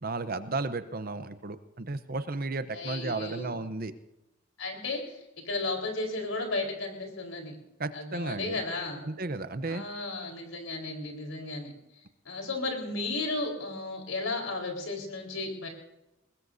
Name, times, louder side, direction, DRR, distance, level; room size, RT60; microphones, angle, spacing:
voice 1, 0.0-3.9 7.8-8.6 9.0-9.8, right 3 dB, 45° right, 12 dB, 0.8 m, -34 dB
voice 2, 2.7-3.5 4.6-7.6 7.9-9.0 9.6-11.7 12.2-15.7, left 2 dB, 80° left, 2 dB, 4.4 m, -34 dB
21.5 x 20.0 x 2.7 m, 0.93 s
head